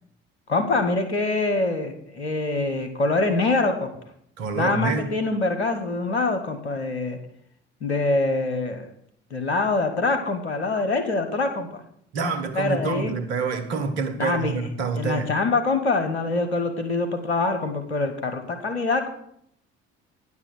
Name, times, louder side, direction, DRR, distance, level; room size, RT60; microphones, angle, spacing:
voice 1, 0.5-3.9 4.5-7.2 7.8-8.9 9.3-11.8 12.5-13.1 14.2-14.6 14.9-19.1, left 3 dB, 90° left, 1.2 m, -24 dB
voice 2, 4.4-5.1 12.1-15.3, right 4 dB, 75° right, 1.2 m, -27 dB
10.0 x 6.1 x 7.5 m
hypercardioid pair, 50°, 32 cm